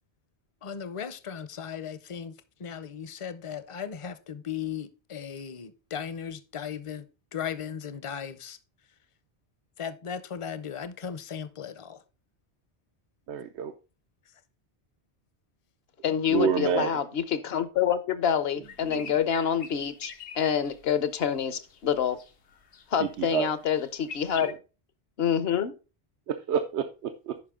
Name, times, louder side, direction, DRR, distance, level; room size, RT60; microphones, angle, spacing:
voice 1, 0.6-7.1 7.3-8.6 9.8-12.0, left 7 dB, 40° left, 0.6 m, -37 dB
voice 2, 13.3-13.7 16.3-17.0 18.8-19.0 23.0-23.5 24.4-24.5 26.3-27.3, right 8 dB, 85° right, 0.9 m, -28 dB
voice 3, 16.0-22.2 22.9-24.5 25.2-25.7, left 8 dB, 70° left, 1.0 m, -27 dB
sound 1, 18.6-21.3 21.7-22.9 23.2-24.5, left 5 dB, 85° left, 1.2 m, -44 dB
9.6 x 5.5 x 3.6 m
omnidirectional pair, 1.1 m